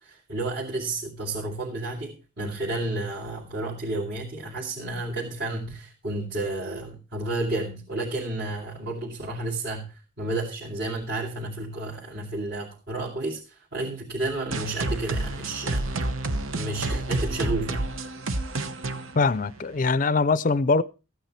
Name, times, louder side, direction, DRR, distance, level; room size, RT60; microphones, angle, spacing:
voice 1, 0.0-16.2 16.5-17.8, right 2 dB, 55° right, 2.4 m, -31 dB
sound 1, 14.5-20.0, right 2 dB, 75° right, 1.0 m, -29 dB
voice 2, 19.2-20.8, left 3 dB, 40° left, 0.5 m, -22 dB
14.5 x 9.1 x 4.3 m
head